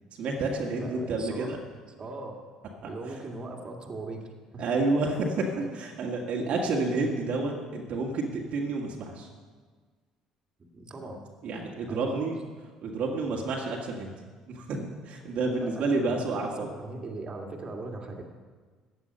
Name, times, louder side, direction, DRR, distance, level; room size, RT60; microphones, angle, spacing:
voice 1, 0.2-1.6 2.8-3.2 4.6-9.3 11.4-12.4 12.8-14.1 14.5-16.7, right 3 dB, 55° right, -1 dB, 1.8 m, -30 dB
voice 2, 0.8-1.6 2.0-2.3 2.9-4.7 5.6-5.7 6.3-6.6 10.7-11.2 11.9-12.3 15.2-18.2, right 2 dB, 35° right, 2 dB, 2.1 m, -39 dB
15.0 x 9.5 x 5.4 m, 1.5 s
figure-of-eight pair, 55°, 3 cm